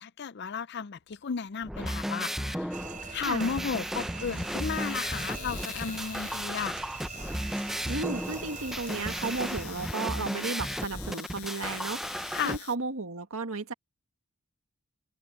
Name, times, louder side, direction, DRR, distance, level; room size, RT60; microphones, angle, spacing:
voice 1, 0.0-2.7 3.1-6.8 12.3-12.5, left 6 dB, 50° left, 0.5 m, -34 dB
Domestic sounds home sounds, 1.0-1.2 1.5-12.8, left 13 dB, 75° left, 0.8 m, -47 dB
sound 1, 1.6-12.6, equal, ahead, 0.6 m, -35 dB
sound 2, 2.7-9.6, right 5 dB, 35° right, 4.6 m, -42 dB
voice 2, 3.2-3.6 7.8-13.7, right 3 dB, 70° right, 1.8 m, -34 dB
open air
head